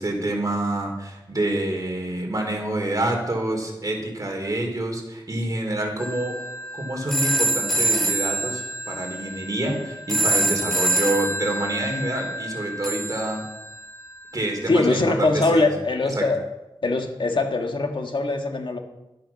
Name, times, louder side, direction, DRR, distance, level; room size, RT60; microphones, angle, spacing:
voice 1, 0.0-6.4 6.8-13.4 14.3-15.7 16.1-16.3, right 1 dB, 40° right, 1 dB, 3.6 m, -27 dB
sound 1, 6.0-14.1, right 1 dB, 5° left, 2.4 m, -26 dB
voice 2, 14.7-16.4 16.8-18.8, left 2 dB, 65° left, 4 dB, 1.6 m, -22 dB
12.5 x 10.5 x 5.9 m, 0.99 s
wide cardioid pair, 65°, 9 cm